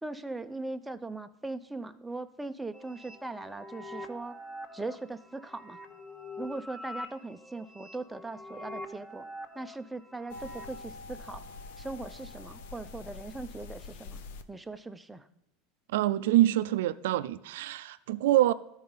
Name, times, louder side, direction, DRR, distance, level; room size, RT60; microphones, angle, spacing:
voice 1, 0.0-4.4 4.7-5.8 6.4-9.3 9.5-11.4 11.8-14.2 14.5-15.3, right 2 dB, 5° right, 0.4 m, -40 dB
sound 1, 2.7-10.8, left 1 dB, 10° left, 0.8 m, -45 dB
sound 2, 10.3-14.4, left 3 dB, 80° left, 0.6 m, -45 dB
voice 2, 15.9-18.5, right 14 dB, 85° right, 0.4 m, -25 dB
12.5 x 4.8 x 5.4 m
supercardioid pair, 140°, 0 cm